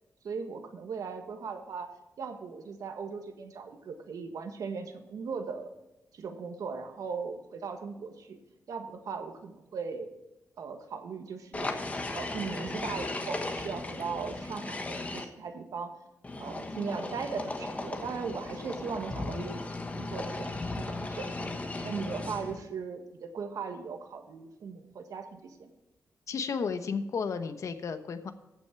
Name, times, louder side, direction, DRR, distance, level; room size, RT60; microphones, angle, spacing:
voice 1, 0.2-1.9 2.2-5.7 6.1-8.4 8.7-10.1 10.6-11.8 12.1-15.9 16.4-21.5 21.8-25.7, right 5 dB, 80° right, 6 dB, 1.5 m, -38 dB
sound 1, 11.5-15.2 16.2-22.6, left 2 dB, 25° left, 1.2 m, -36 dB
voice 2, 26.3-28.3, left 5 dB, 60° left, 9 dB, 0.9 m, -33 dB
14.5 x 6.4 x 4.7 m, 1.0 s
wide cardioid pair, 145°, 6 cm